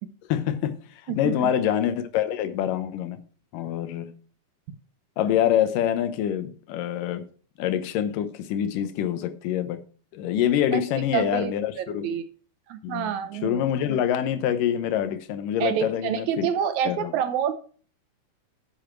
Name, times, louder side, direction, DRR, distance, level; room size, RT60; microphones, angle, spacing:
voice 1, 0.3-0.8 1.1-3.2 3.5-4.2 5.2-7.2 7.6-9.8 10.1-12.2 12.8-13.1 13.4-16.5 16.9-17.1, left 10 dB, 80° left, 2.5 m, -25 dB
voice 2, 1.1-1.5 10.7-10.8 11.1-12.2 12.7-13.7 15.6-17.6, right 9 dB, 75° right, 1.9 m, -28 dB
10.0 x 7.0 x 4.5 m
omnidirectional pair, 3.8 m